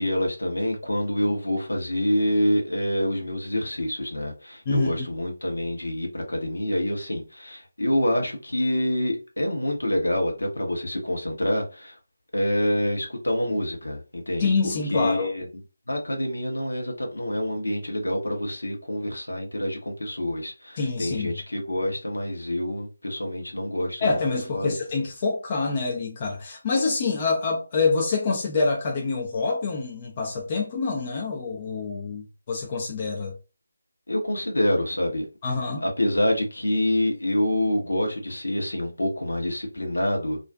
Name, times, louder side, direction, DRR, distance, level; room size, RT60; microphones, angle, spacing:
voice 1, 0.0-12.0 12.3-14.5 14.9-15.4 15.9-24.2 24.5-24.7 34.1-35.3 35.8-40.4, left 1 dB, 70° left, 0.9 m, -26 dB
voice 2, 4.7-5.0 14.4-15.3 20.8-21.3 24.0-33.4 35.4-35.8, left 4 dB, 30° left, 0.5 m, -26 dB
2.5 x 2.3 x 2.2 m
figure-of-eight pair, 155°, 0 cm